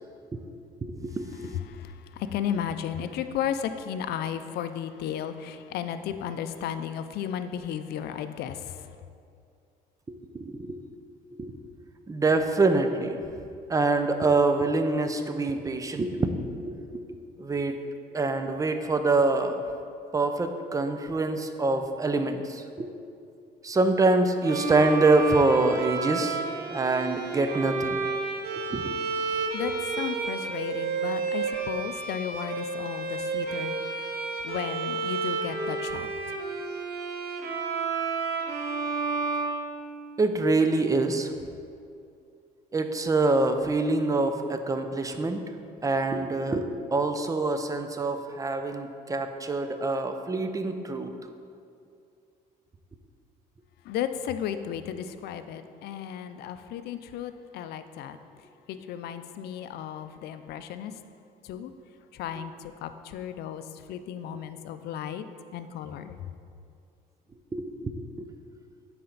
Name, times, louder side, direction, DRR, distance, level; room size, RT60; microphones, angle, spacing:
voice 1, 0.8-1.6 10.1-10.8 11.4-11.5 12.1-13.2 13.7-16.4 16.6-17.8 18.1-19.6 20.1-22.9 23.6-26.4 26.7-28.0 28.7-29.0 40.2-41.3 42.7-45.4 45.8-51.1 67.5-68.3, right 3 dB, 20° right, 7 dB, 0.5 m, -25 dB
voice 2, 1.5-8.9 29.5-34.2 34.4-36.1 53.8-58.2 58.7-60.9 61.4-61.7 62.1-65.3 65.5-66.3, left 9 dB, 75° left, 10 dB, 0.5 m, -34 dB
Bowed string instrument, 24.4-40.3, right 4 dB, 65° right, 0.9 m, -31 dB
9.9 x 4.3 x 3.9 m, 2.5 s
cardioid pair, 110°, 17 cm